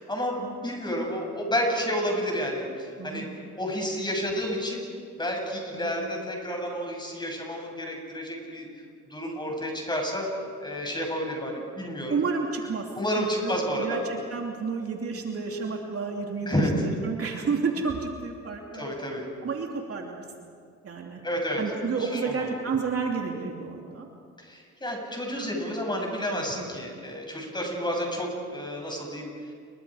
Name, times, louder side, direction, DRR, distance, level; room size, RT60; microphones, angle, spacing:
voice 1, 0.0-3.3 3.6-4.8 5.2-8.7 9.1-10.3 10.6-12.2 12.9-14.1 16.5-16.7 18.7-19.3 21.2-21.6 22.0-22.5 24.4-29.5, equal, 15° left, 1 dB, 7.0 m, -30 dB
voice 2, 3.0-3.3 5.7-5.9 12.1-12.8 13.2-19.1 19.4-20.5 20.8-21.2 21.6-24.1 25.3-25.5, right 5 dB, 50° right, 1 dB, 2.8 m, -31 dB
29.0 x 23.0 x 5.0 m, 2.2 s
cardioid pair, 90°, 30 cm